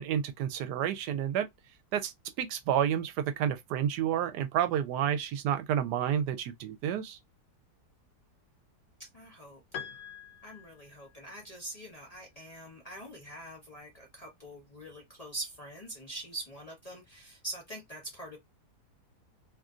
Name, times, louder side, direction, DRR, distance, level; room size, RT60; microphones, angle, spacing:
voice 1, 0.0-1.5 1.9-7.2, right 9 dB, 80° right, 1.2 m, -30 dB
voice 2, 9.1-9.6 10.4-18.4, right 2 dB, 35° left, 0.7 m, -44 dB
Piano, 9.7-11.4, left 8 dB, 80° left, 1.3 m, -45 dB
3.1 x 2.5 x 2.3 m
omnidirectional pair, 1.8 m